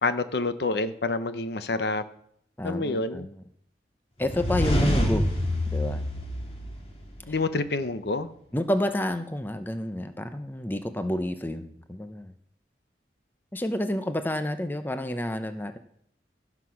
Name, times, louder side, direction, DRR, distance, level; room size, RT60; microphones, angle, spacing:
voice 1, 0.0-2.0 2.6-3.3 7.3-8.3, left 3 dB, 65° left, 11 dB, 0.8 m, -28 dB
voice 2, 2.6-3.4 4.2-5.3 5.7-6.0 7.3-7.4 8.5-12.3 13.5-15.8, left 1 dB, 10° left, 9 dB, 0.6 m, -29 dB
sound 1, 4.2-7.2, equal, 35° left, 2.1 m, -26 dB
16.0 x 6.0 x 5.9 m, 0.67 s
head